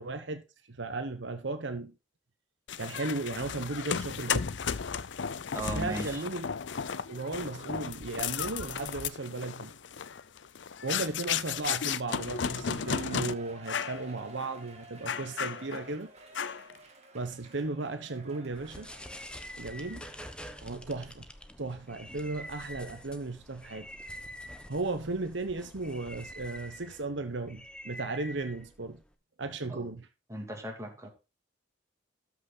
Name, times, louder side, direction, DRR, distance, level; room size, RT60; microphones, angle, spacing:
voice 1, 0.0-2.0 2.8-4.5 5.7-6.5 7.1-9.7 10.8-16.1 17.1-18.9 19.6-20.1 20.6-21.3 21.6-23.9 24.7-29.0 29.4-30.1, right 3 dB, 70° right, 1.1 m, -35 dB
sound 1, 2.7-13.3 13.7-14.0 14.4-14.5 15.1-15.9 16.3-16.8, left 7 dB, 70° left, 0.6 m, -34 dB
voice 2, 5.5-6.2 29.7-29.9 30.3-31.1, right 1 dB, 15° right, 2.8 m, -37 dB
Shout / Cheering, 12.2-20.5 20.9-21.0, right 2 dB, 35° right, 2.2 m, -53 dB
sound 2, 18.5-29.1, equal, 5° left, 1.0 m, -46 dB
13.5 x 6.2 x 4.0 m
head